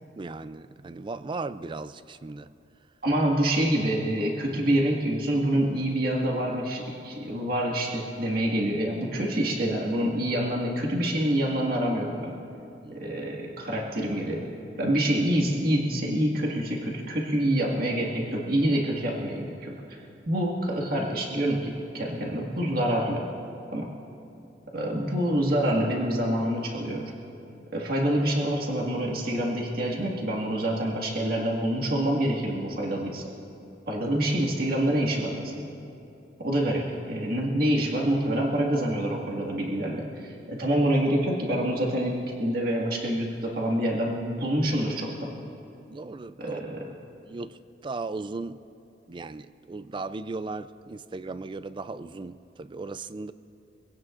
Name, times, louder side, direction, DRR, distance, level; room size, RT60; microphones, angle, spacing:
voice 1, 0.2-2.5 12.8-13.1 45.9-46.6 47.3-48.6 49.1-53.3, right 3 dB, 30° right, 14 dB, 0.4 m, -37 dB
voice 2, 3.0-12.3 12.9-14.5 14.8-23.3 23.7-23.9 24.7-27.1 27.7-33.3 33.9-35.6 36.4-45.4 46.4-46.9, right 1 dB, 60° right, -2 dB, 1.9 m, -26 dB
24.5 x 17.0 x 2.5 m, 2.8 s
head